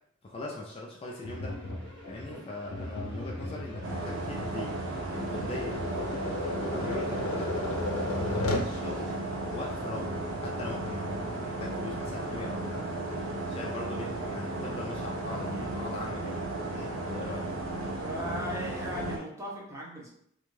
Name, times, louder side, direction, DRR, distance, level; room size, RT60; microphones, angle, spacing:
voice 1, 0.2-1.6 2.1-4.8 5.1-7.5 8.2-9.2 9.5-10.1 10.4-12.9 13.5-17.5, left 2 dB, 30° left, -2 dB, 0.3 m, -40 dB
sound 1, 1.0-9.1, equal, 55° right, 0.9 m, -52 dB
Tap, 1.2-8.7, left 2 dB, 85° left, 0.5 m, -35 dB
sound 2, 3.8-19.2, right 2 dB, 80° right, 0.6 m, -34 dB
voice 2, 18.0-20.1, left 1 dB, 15° right, -3 dB, 0.6 m, -37 dB
2.5 x 2.3 x 3.1 m, 0.70 s
head